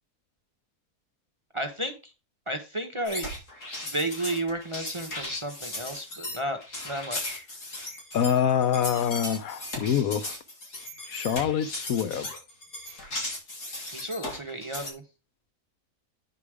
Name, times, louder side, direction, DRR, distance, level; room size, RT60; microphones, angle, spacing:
voice 1, 1.5-2.1 2.5-3.3 3.9-6.6 6.8-7.5 13.9-15.0, right 1 dB, 25° right, 0.8 m, -32 dB
sound 1, 3.0-14.9, left 1 dB, 90° left, 3.7 m, -37 dB
voice 2, 8.1-10.4 11.0-12.3, left 8 dB, 70° left, 1.0 m, -25 dB
9.3 x 5.0 x 4.8 m
omnidirectional pair, 1.6 m